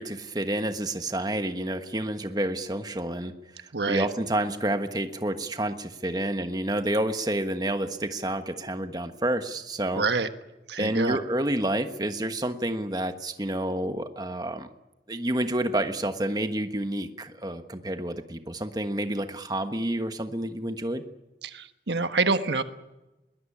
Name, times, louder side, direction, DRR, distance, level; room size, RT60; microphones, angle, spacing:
voice 1, 0.0-10.1 10.8-14.7 15.1-21.0, right 1 dB, 20° right, 8 dB, 1.3 m, -29 dB
voice 2, 3.7-4.1 9.9-10.3 10.7-11.2 21.4-22.6, right 3 dB, 75° right, 9 dB, 1.4 m, -26 dB
22.0 x 19.5 x 8.7 m, 0.98 s
head